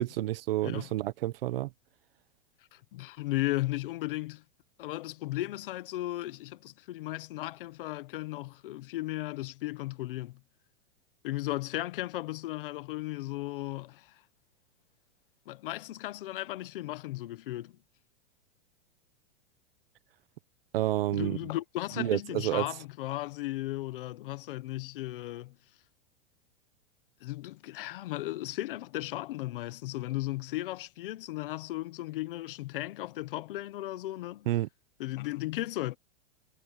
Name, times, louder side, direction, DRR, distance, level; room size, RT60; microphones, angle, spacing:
voice 1, 0.0-1.7 20.7-21.4 22.0-22.7 34.5-34.7, right 15 dB, 50° right, 1.1 m, -29 dB
voice 2, 2.7-4.4 4.8-10.4 11.2-14.2 15.5-17.7 21.1-25.5 27.2-34.5 35.0-36.0, left 17 dB, 50° left, 1.0 m, -36 dB
supercardioid pair, 175°, 36 cm